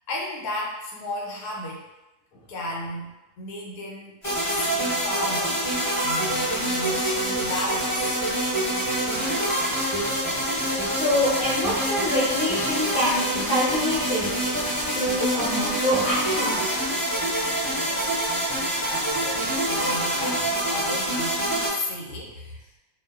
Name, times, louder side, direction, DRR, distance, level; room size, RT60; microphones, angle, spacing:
voice 1, 0.1-1.8 2.3-4.2 4.5-5.6 6.0-8.2 17.7-18.1 18.9-22.6, left 1 dB, 85° left, -2 dB, 1.1 m, -34 dB
sound 1, 4.2-21.7, right 1 dB, 30° left, 1.1 m, -26 dB
voice 2, 11.0-14.3 14.9-16.8, left 1 dB, 55° left, -8 dB, 0.9 m, -25 dB
2.6 x 2.1 x 2.2 m, 1.0 s
omnidirectional pair, 1.7 m